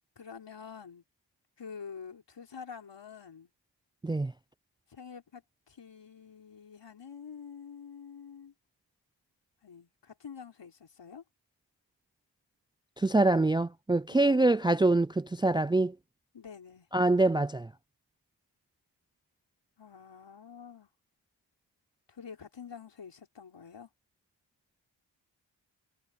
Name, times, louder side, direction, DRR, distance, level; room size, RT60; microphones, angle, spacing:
voice 1, 0.2-1.0 1.6-3.5 4.9-8.5 9.6-11.2 14.1-14.6 16.3-16.9 19.8-20.9 22.1-23.9, left 6 dB, 70° left, 4.9 m, -47 dB
voice 2, 13.0-16.0 16.9-17.7, right 2 dB, 10° right, 0.4 m, -25 dB
cardioid pair, 45°, 44 cm